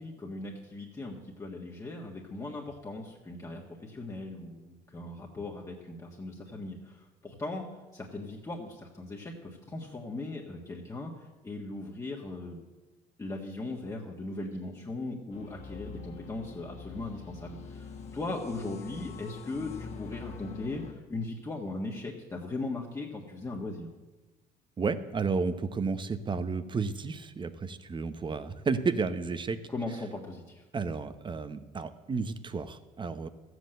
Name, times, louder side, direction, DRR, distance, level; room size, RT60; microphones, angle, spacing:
voice 1, 0.0-7.6 7.9-11.1 11.4-12.6 13.2-23.9 29.7-30.6, left 2 dB, 20° left, -2 dB, 1.7 m, -38 dB
sound 1, 15.3-20.9, left 5 dB, 40° left, 1.8 m, -44 dB
voice 2, 24.8-29.6 30.7-33.3, right 4 dB, 30° right, 12 dB, 0.9 m, -32 dB
13.5 x 8.0 x 7.8 m, 1.1 s
cardioid pair, 110°, 17 cm